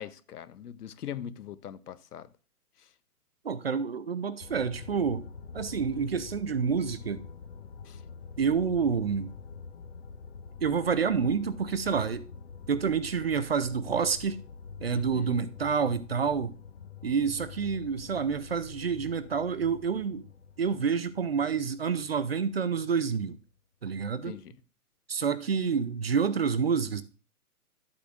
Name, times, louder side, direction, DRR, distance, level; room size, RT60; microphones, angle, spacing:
voice 1, 0.0-2.3 7.9-8.0 14.9-15.4 24.2-24.5, left 9 dB, 85° left, 0.9 m, -41 dB
voice 2, 3.4-5.3 5.5-7.2 8.4-9.3 10.6-12.3 12.7-14.4 14.8-16.5 17.0-20.3 20.6-23.4 23.8-24.4 25.1-27.0, right 6 dB, 45° right, 0.5 m, -28 dB
sound 1, 4.4-23.2, left 6 dB, 50° left, 0.4 m, -46 dB
11.5 x 8.5 x 2.4 m
hypercardioid pair, 170°, 45 cm